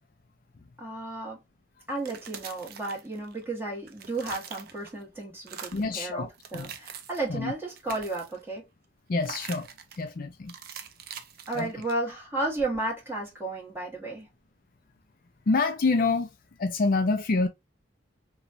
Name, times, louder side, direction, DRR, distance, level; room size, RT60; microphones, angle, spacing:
voice 1, 0.8-1.4 1.9-8.6 11.5-14.3, right 2 dB, 10° right, 1.3 m, -33 dB
sound 1, 1.9-3.5 3.8-5.0 5.4-5.9 6.3-7.3 7.6-8.5 9.2-10.0 10.5-12.2, right 7 dB, 55° right, 0.4 m, -44 dB
voice 2, 5.7-6.7 7.3-7.5 9.1-9.7 10.0-10.5 11.5-11.7 15.5-16.3 16.6-17.5, left 3 dB, 50° left, 0.4 m, -26 dB
3.0 x 2.3 x 2.5 m
head